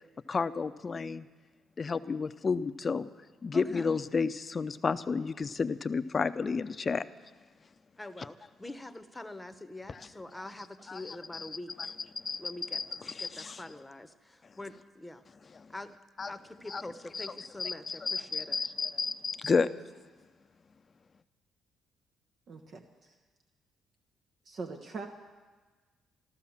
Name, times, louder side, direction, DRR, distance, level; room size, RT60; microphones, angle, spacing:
voice 1, 0.3-1.3 1.8-3.1 3.4-7.0 9.9-10.0 10.9-11.5 11.8-11.9 12.2-12.9 13.1-13.6 16.2-16.3 16.7-16.8 17.1-19.7, left 5 dB, 40° left, 12 dB, 0.6 m, -31 dB
voice 2, 3.5-3.9 8.0-11.9 12.4-12.8 13.2-15.2 15.7-15.9 16.3-18.6, left 2 dB, 15° left, 11 dB, 1.0 m, -45 dB
voice 3, 22.5-23.1 24.4-25.1, right 4 dB, 55° right, 4 dB, 1.2 m, -42 dB
14.0 x 13.0 x 7.3 m, 1.3 s
supercardioid pair, 65°, 0 cm